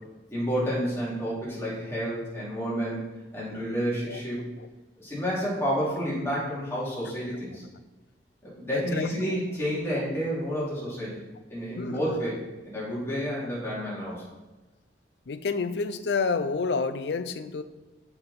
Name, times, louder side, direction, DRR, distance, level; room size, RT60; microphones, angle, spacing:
voice 1, 0.3-3.0 3.3-4.4 5.0-7.6 8.4-11.2 11.5-12.4 12.7-14.2, equal, 15° left, -7 dB, 2.6 m, -30 dB
voice 2, 8.7-9.4 10.6-10.7 11.8-12.0 15.3-17.6, left 4 dB, 65° left, 11 dB, 0.4 m, -29 dB
6.8 x 5.6 x 4.1 m, 1.2 s
head